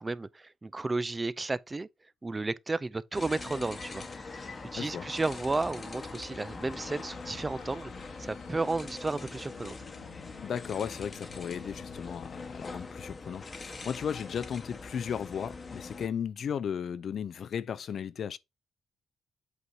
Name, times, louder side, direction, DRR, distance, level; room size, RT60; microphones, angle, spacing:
voice 1, 0.0-1.9 2.2-4.3 4.7-7.9 8.2-9.8, right 3 dB, 20° right, 0.3 m, -33 dB
sound 1, 3.1-16.1, left 3 dB, 35° left, 1.0 m, -43 dB
sound 2, 5.2-14.1, left 7 dB, 85° left, 0.9 m, -53 dB
voice 2, 10.4-18.4, left 8 dB, 60° left, 0.4 m, -35 dB
8.1 x 2.7 x 4.6 m
cardioid pair, 95°, 0 cm